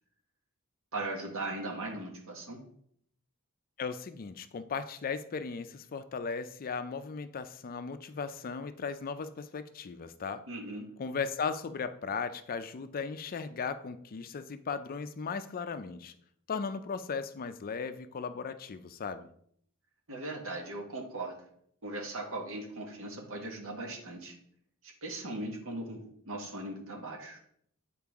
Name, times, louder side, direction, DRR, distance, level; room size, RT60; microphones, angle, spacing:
voice 1, 0.9-2.6 10.5-10.9 20.1-21.4 21.8-24.4 24.8-27.4, right 2 dB, 65° right, 1 dB, 1.5 m, -39 dB
voice 2, 3.8-10.5 11.0-16.1 16.5-19.3, left 5 dB, 40° left, 11 dB, 0.4 m, -37 dB
8.5 x 4.6 x 3.5 m, 0.67 s
head